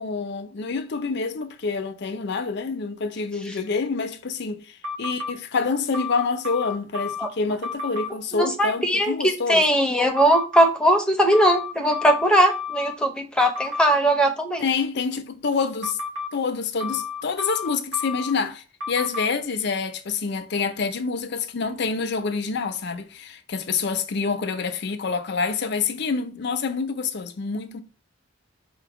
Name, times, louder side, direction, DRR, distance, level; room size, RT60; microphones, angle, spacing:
voice 1, 0.0-9.6 14.6-16.0 16.3-27.8, left 4 dB, 60° left, 0.5 m, -27 dB
sound 1, 4.8-5.3 5.9-7.3 7.6-8.1 10.2-10.7 11.3-12.9 13.4-13.8 15.8-16.3 16.8-18.3 18.8-19.3, left 5 dB, 65° right, 1.2 m, -31 dB
voice 2, 8.3-14.7, right 1 dB, 5° left, 0.6 m, -20 dB
5.0 x 2.2 x 4.7 m
head